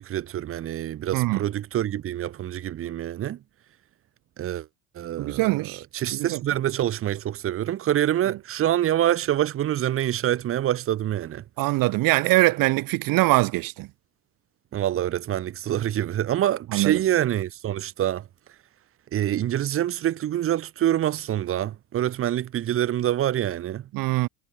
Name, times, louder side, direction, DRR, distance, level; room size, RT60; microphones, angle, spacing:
voice 1, 0.0-3.4 4.4-4.7 5.0-5.6 5.9-11.4 14.7-18.2 19.1-23.9, right 12 dB, 35° right, 2.1 m, -26 dB
voice 2, 1.1-1.5 5.2-5.8 6.1-6.4 11.6-13.9 16.7-17.0 23.9-24.3, right 20 dB, 55° right, 5.3 m, -22 dB
cardioid pair, 175°, 39 cm